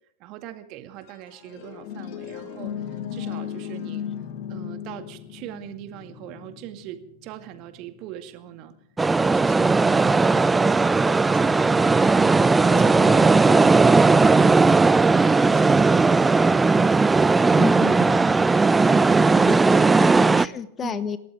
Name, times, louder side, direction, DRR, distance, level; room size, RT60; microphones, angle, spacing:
voice 1, 0.2-4.1 4.5-8.7 9.2-13.7 14.1-14.7 15.2-17.0 18.8-20.1 20.8-21.0, right 13 dB, 40° right, 8 dB, 2.1 m, -41 dB
sound 1, 1.0-8.6 11.8-15.9, left 9 dB, 45° left, 2.1 m, -38 dB
sound 2, 9.0-20.5, right 3 dB, 10° right, 0.5 m, -17 dB
voice 2, 17.5-18.2 19.5-19.6 20.0-21.2, left 7 dB, 20° left, 15 dB, 1.1 m, -31 dB
28.0 x 14.0 x 3.6 m, 0.74 s
figure-of-eight pair, 90°, 0 cm